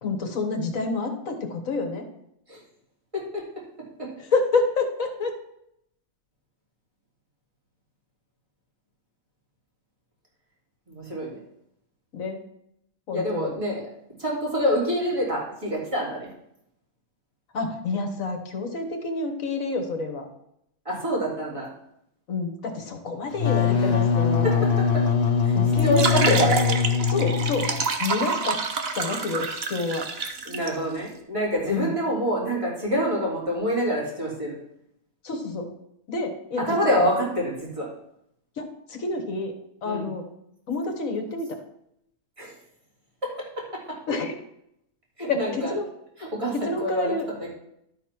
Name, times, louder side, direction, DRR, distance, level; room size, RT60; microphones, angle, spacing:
voice 1, 0.0-2.0 4.2-5.3 12.1-12.4 13.1-13.5 17.5-20.3 22.3-24.7 25.5-26.5 27.1-27.7 28.0-28.6 28.9-30.1 31.7-31.9 35.2-35.7 36.1-37.0 38.6-39.5 39.8-40.2 40.7-41.6 44.1-44.3 45.3-45.9 46.5-47.3, left 3 dB, 75° left, 5 dB, 1.7 m, -28 dB
voice 2, 3.1-3.7 4.0-4.1 10.9-11.4 13.1-13.9 14.2-16.3 20.8-21.7 23.7-23.9 24.4-25.1 25.4-25.6 25.8-26.5 30.4-34.6 36.6-37.9 39.8-40.1 42.4-42.5 43.2-44.0 45.2-45.7 46.2-47.5, equal, 20° right, -5 dB, 3.2 m, -27 dB
Wind instrument woodwind instrument, 23.3-27.9, left 6 dB, 50° left, 0.8 m, -22 dB
sound 1, 25.7-30.7, right 4 dB, 50° right, 1.1 m, -27 dB
12.0 x 4.1 x 5.9 m, 0.77 s
omnidirectional pair, 1.4 m